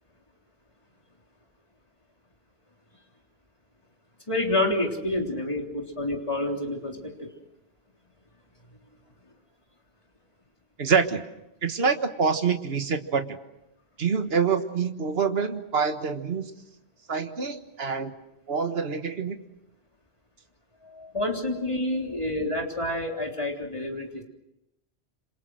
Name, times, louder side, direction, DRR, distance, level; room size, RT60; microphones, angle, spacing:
voice 1, 4.3-7.3 20.8-24.2, left 1 dB, 30° left, 1 dB, 3.7 m, -28 dB
voice 2, 10.8-11.2 11.6-13.4 14.0-16.5 17.1-18.1 18.5-19.4, right 5 dB, 65° right, 7 dB, 1.7 m, -26 dB
28.0 x 27.0 x 6.3 m, 0.87 s
omnidirectional pair, 1.1 m